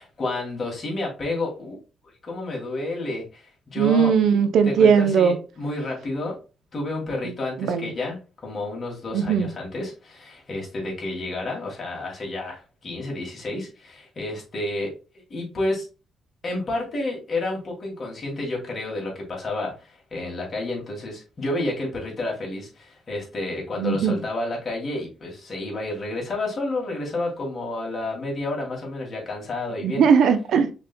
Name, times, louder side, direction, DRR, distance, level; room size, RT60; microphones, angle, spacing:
voice 1, 0.0-4.1 4.6-6.4 6.7-8.2 8.4-14.9 15.3-15.9 16.4-30.0, left 2 dB, 40° left, 2.5 m, -30 dB
voice 2, 3.8-5.4 7.6-7.9 9.1-9.5 23.8-24.2 29.8-30.7, right 6 dB, 75° right, 0.6 m, -19 dB
5.1 x 4.2 x 2.3 m
cardioid pair, 90°, 0 cm